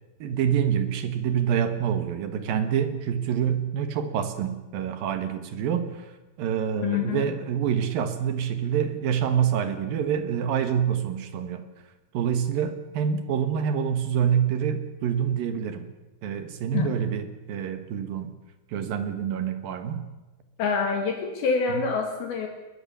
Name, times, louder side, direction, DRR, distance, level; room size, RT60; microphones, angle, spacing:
voice 1, 0.2-6.1 6.4-11.7 12.1-15.9 16.2-18.3 18.7-20.0, right 8 dB, 65° right, 9 dB, 3.1 m, -26 dB
voice 2, 6.8-7.3 16.7-16.9 20.6-22.5, left 5 dB, 70° left, 3 dB, 3.7 m, -26 dB
21.0 x 20.0 x 7.0 m, 1.1 s
omnidirectional pair, 4.7 m